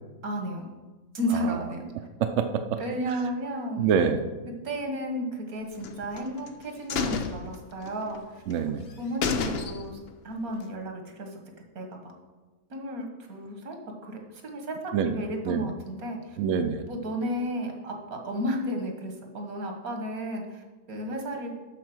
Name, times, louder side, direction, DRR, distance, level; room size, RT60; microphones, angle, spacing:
voice 1, 0.2-0.7 1.1-1.9 2.8-3.9 4.6-8.4 9.0-11.4 11.8-12.1 12.7-16.4 16.9-21.5, equal, 90° right, 3 dB, 1.9 m, -33 dB
voice 2, 2.2-2.8 3.1-3.2 3.8-4.3 8.5-8.9 14.9-15.2 15.4-15.7 16.4-16.8, right 7 dB, 65° right, 7 dB, 0.9 m, -26 dB
sound 1, 5.8-6.5 6.9-8.2 8.5-8.6 8.9-9.0 9.2-10.1 10.5-10.6, left 5 dB, 50° left, 0.9 m, -31 dB
12.0 x 4.2 x 6.1 m, 1.3 s
omnidirectional pair, 1.5 m